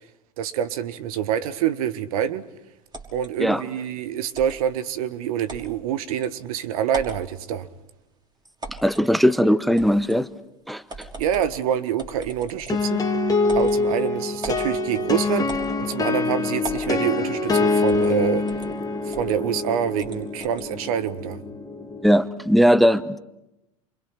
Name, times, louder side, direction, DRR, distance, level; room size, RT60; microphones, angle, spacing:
voice 1, 0.4-2.4 3.1-7.7 11.2-13.1 13.5-15.5 15.8-18.4 19.0-21.4, right 9 dB, 70° right, 13 dB, 1.6 m, -26 dB
Mouse Clicks, 2.9-3.3 4.3-4.6 5.5-5.7 6.2-6.3 6.8-7.2 8.6-9.1 9.8-10.2 10.9-11.5 12.0-12.9 13.4-13.8 14.4-14.7 15.5-16.0 16.6-16.9 17.9-18.1 18.5-18.7 19.1-19.3 20.0-20.7, right 2 dB, 20° right, 5.8 m, -38 dB
voice 2, 8.8-10.3 10.7-10.8 22.0-23.2, equal, ahead, 15 dB, 1.0 m, -18 dB
sound 1, 12.7-22.3, left 3 dB, 20° left, 2.6 m, -25 dB
28.5 x 25.0 x 6.0 m, 0.90 s
hypercardioid pair, 85°, 19 cm